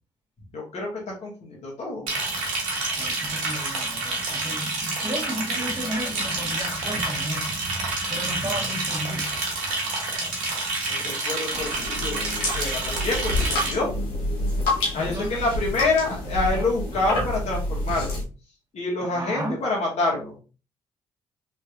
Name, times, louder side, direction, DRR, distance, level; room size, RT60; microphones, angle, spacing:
voice 1, 0.5-0.9 1.2-2.1 10.9-13.9 14.9-18.2 18.7-20.4, left 2 dB, 55° left, 1.9 m, -27 dB
Liquid, 2.1-13.7, right 2 dB, 85° right, 1.2 m, -28 dB
voice 2, 3.0-7.6 7.9-9.3 14.9-15.5 19.0-19.6, equal, 30° right, 1.6 m, -34 dB
sound 1, 11.5-18.2, left 1 dB, 80° left, 1.3 m, -28 dB
4.1 x 3.1 x 2.6 m
hypercardioid pair, 50°, 13 cm